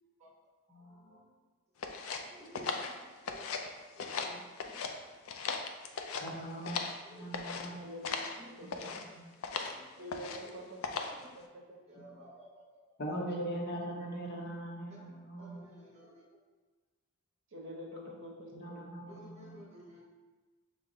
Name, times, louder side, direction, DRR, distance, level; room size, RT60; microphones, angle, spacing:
voice 1, 0.6-1.4 2.3-4.8 7.0-7.2 7.7-7.9 8.4-8.5 8.9-9.0 9.4-9.9 10.3-11.3 11.9-13.0 14.9-15.0 15.4-16.4 19.0-20.0, right 1 dB, 30° right, -5 dB, 1.1 m, -55 dB
sound 1, 1.8-3.7 4.0-4.9 5.2-7.0 7.3-7.7 8.0-8.4 8.7-9.0 9.4-9.8 10.1-10.5 10.8-11.2, left 5 dB, 80° left, 0.4 m, -38 dB
voice 2, 6.2-7.9 9.1-9.2 13.0-15.7 18.5-19.6, right 1 dB, 50° left, -1 dB, 0.8 m, -40 dB
voice 3, 7.8-8.2 8.6-8.8 10.0-10.8 11.2-11.8 13.4-13.5 13.9-14.0 17.5-18.8, equal, 60° right, -2 dB, 0.8 m, -46 dB
6.2 x 2.1 x 3.8 m, 1.3 s
head